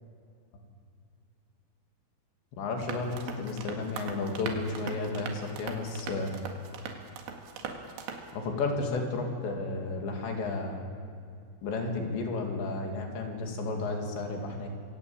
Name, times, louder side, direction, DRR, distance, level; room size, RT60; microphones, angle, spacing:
voice 1, 2.5-6.3 8.3-10.8 11.6-14.7, left 3 dB, 80° left, 2 dB, 4.8 m, -32 dB
sound 1, 2.8-8.3, right 5 dB, 85° right, 4.0 m, -41 dB
25.5 x 15.5 x 8.7 m, 2.4 s
omnidirectional pair, 5.0 m